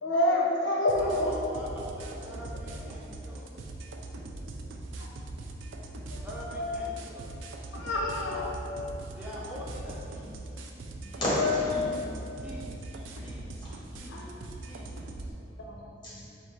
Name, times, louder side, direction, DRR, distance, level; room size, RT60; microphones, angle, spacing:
voice 1, 0.0-1.3 2.7-2.8 5.0-5.1 6.1-6.3 6.5-6.9 7.7-8.7 14.1-14.3 15.6-15.8, left 1 dB, 85° left, -2 dB, 0.5 m, -28 dB
sound 1, 0.9-15.3, right 2 dB, 85° right, 0.4 m, -41 dB
voice 2, 1.0-3.5 6.2-7.4 9.1-10.4 11.1-11.2 12.4-12.8 13.2-13.6 13.9-14.4 14.7-15.0, equal, 10° right, -7 dB, 0.4 m, -44 dB
voice 3, 11.0-11.9 12.9-13.1 13.6-13.7 14.1-14.3 15.6-16.3, left 1 dB, 25° left, -9 dB, 1.3 m, -33 dB
3.7 x 2.5 x 4.4 m, 2.8 s
head